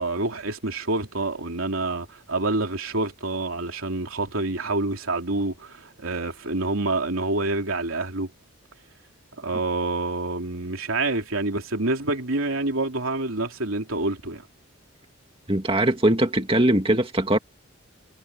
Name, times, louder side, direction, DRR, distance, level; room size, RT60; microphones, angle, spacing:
voice 1, 0.0-8.3 9.4-14.4, right 2 dB, 90° right, 3.3 m, -27 dB
voice 2, 15.5-17.4, right 1 dB, 25° right, 2.2 m, -21 dB
head